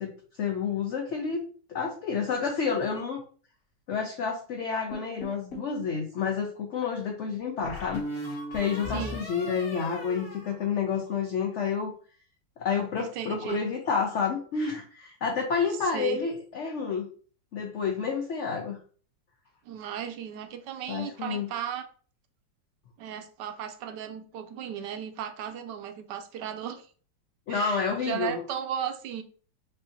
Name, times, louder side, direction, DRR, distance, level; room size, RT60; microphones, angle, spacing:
voice 1, 0.0-1.4 1.7-3.2 3.9-11.9 12.6-17.1 17.5-18.8 20.9-21.5 27.5-28.4, left 6 dB, 70° left, 2 dB, 0.7 m, -29 dB
sound 1, 4.9-5.7 7.6-11.3, left 1 dB, 50° left, 2.2 m, -38 dB
voice 2, 13.0-13.6 15.9-16.2 19.6-21.8 23.0-26.9 27.5-29.2, right 9 dB, 75° right, 7 dB, 1.2 m, -35 dB
5.5 x 2.7 x 2.6 m, 0.43 s
omnidirectional pair, 1.9 m